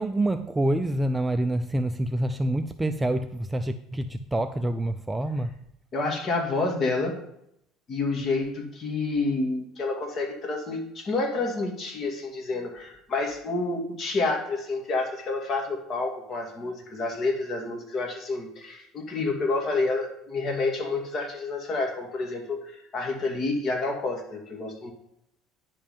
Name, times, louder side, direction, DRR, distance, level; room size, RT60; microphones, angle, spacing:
voice 1, 0.0-5.6, right 1 dB, 10° right, 8 dB, 0.4 m, -27 dB
voice 2, 5.9-7.2 7.9-24.9, left 3 dB, 35° left, 1 dB, 2.2 m, -29 dB
10.0 x 5.4 x 5.3 m, 0.76 s
cardioid pair, 125°, 0 cm